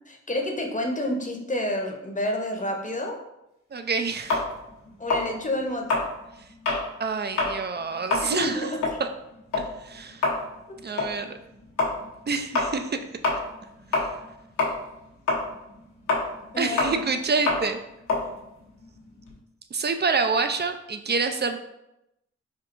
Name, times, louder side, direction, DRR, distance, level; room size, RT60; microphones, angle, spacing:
voice 1, 0.1-3.2 5.0-6.0 8.2-8.8 16.5-17.0, left 1 dB, 25° left, 2 dB, 0.8 m, -29 dB
voice 2, 3.7-4.4 7.0-9.1 9.5-10.2 10.8-11.3 12.3-13.0 16.6-17.8 19.7-21.6, right 4 dB, 35° right, 7 dB, 0.4 m, -27 dB
sound 1, 4.3-6.9 7.3-7.6 7.9-14.3 14.6-19.4, left 3 dB, 85° left, 0.9 m, -27 dB
4.4 x 2.3 x 2.5 m, 0.87 s
supercardioid pair, 40°, 31 cm